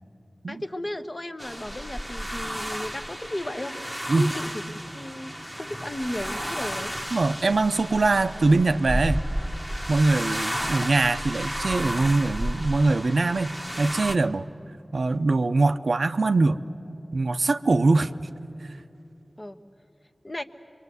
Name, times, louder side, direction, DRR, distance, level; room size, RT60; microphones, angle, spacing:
voice 1, 0.5-3.7 4.1-6.9 19.4-19.6 20.2-20.4, left 1 dB, 35° left, 7 dB, 1.0 m, -34 dB
sound 1, 1.4-14.2, equal, ahead, 1.1 m, -32 dB
voice 2, 7.1-9.2 9.9-14.4 14.9-16.6 17.1-18.1, right 3 dB, 85° right, 10 dB, 0.6 m, -22 dB
25.0 x 23.5 x 8.1 m, 3.0 s
wide cardioid pair, 45°, 0 cm